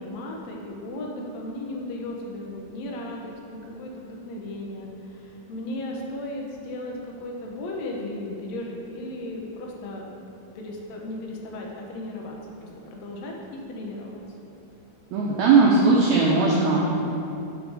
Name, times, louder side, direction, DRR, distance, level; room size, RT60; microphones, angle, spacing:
voice 1, 0.0-10.0 10.5-14.2, left 1 dB, 80° left, -1 dB, 1.6 m, -35 dB
voice 2, 15.1-16.8, right 4 dB, 85° right, -4 dB, 1.6 m, -18 dB
5.3 x 5.1 x 4.7 m, 2.9 s
omnidirectional pair, 4.0 m